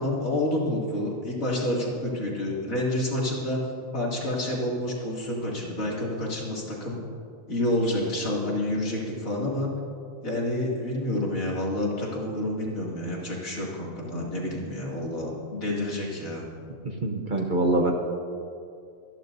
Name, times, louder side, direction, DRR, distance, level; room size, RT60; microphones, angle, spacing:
voice 1, 0.0-3.6 3.9-7.0 7.5-9.7 10.2-16.5, left 1 dB, 80° left, -4 dB, 2.9 m, -28 dB
voice 2, 17.0-17.9, right 2 dB, 40° right, 3 dB, 1.0 m, -24 dB
25.5 x 10.5 x 2.7 m, 2.4 s
omnidirectional pair, 1.4 m